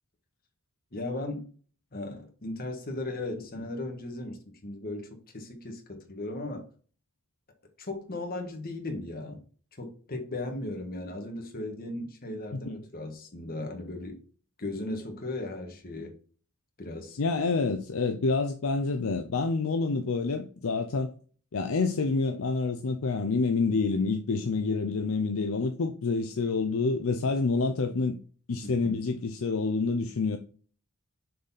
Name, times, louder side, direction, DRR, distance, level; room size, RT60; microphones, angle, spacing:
voice 1, 0.9-1.5 1.9-6.6 7.8-9.4 9.8-14.2 14.6-16.1 16.8-17.2 28.6-29.0, left 2 dB, 40° left, 1.5 m, -37 dB
voice 2, 17.2-21.1 21.5-28.2 28.5-30.4, left 4 dB, 65° left, 0.5 m, -27 dB
6.6 x 4.0 x 4.1 m
head